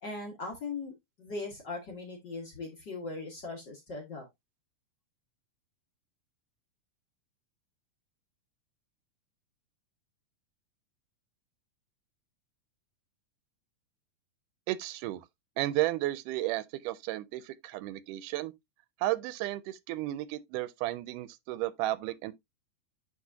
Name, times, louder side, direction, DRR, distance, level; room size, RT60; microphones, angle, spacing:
voice 1, 0.0-4.3, left 3 dB, 40° left, 1.7 m, -39 dB
voice 2, 14.7-15.3 15.6-18.5 19.0-22.3, right 16 dB, 80° right, 2.0 m, -33 dB
9.6 x 4.0 x 2.7 m
omnidirectional pair, 3.8 m